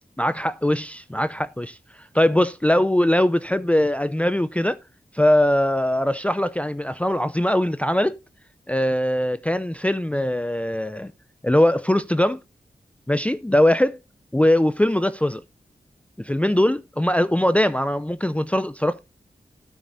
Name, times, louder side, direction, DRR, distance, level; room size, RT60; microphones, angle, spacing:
voice 1, 0.2-4.8 5.1-8.1 8.7-11.1 11.4-12.4 13.1-14.0 14.3-15.4 16.2-19.0, left 1 dB, 10° left, 0.5 m, -21 dB
12.5 x 9.4 x 2.6 m
cardioid pair, 45°, 15 cm